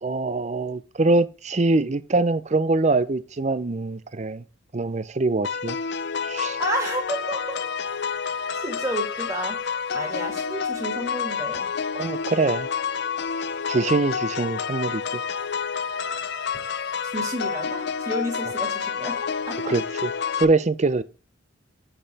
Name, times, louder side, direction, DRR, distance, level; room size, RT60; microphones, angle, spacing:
voice 1, 0.0-4.4 4.7-5.8 6.2-6.6 11.9-12.7 13.7-15.0 19.7-21.0, right 3 dB, 35° right, 0.5 m, -23 dB
sound 1, 5.4-20.4, left 6 dB, 55° left, 0.5 m, -29 dB
voice 2, 6.6-7.6 8.5-9.6 9.9-11.7 17.0-19.7, right 1 dB, 15° right, 2.2 m, -31 dB
7.8 x 6.9 x 3.4 m
head